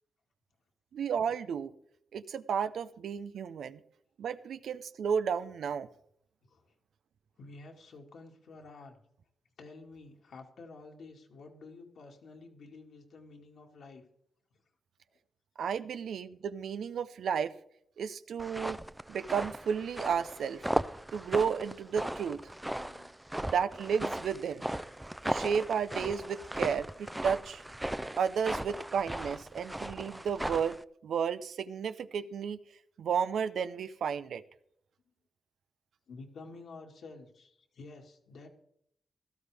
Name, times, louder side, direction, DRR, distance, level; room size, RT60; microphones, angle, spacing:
voice 1, 0.9-1.7 2.1-3.8 4.2-5.9 15.6-17.5 18.0-18.8 19.1-20.6 21.1-22.4 23.5-24.6 25.3-27.6 28.1-32.6 33.0-34.4, right 7 dB, 80° right, 12 dB, 0.6 m, -32 dB
voice 2, 6.4-6.7 7.4-9.0 9.6-14.0 22.8-23.1 36.1-38.5, left 3 dB, 75° left, 1 dB, 2.1 m, -50 dB
sound 1, 18.4-30.8, right 1 dB, 10° right, 0.5 m, -37 dB
16.5 x 13.0 x 3.5 m, 0.70 s
cardioid pair, 55°, 0 cm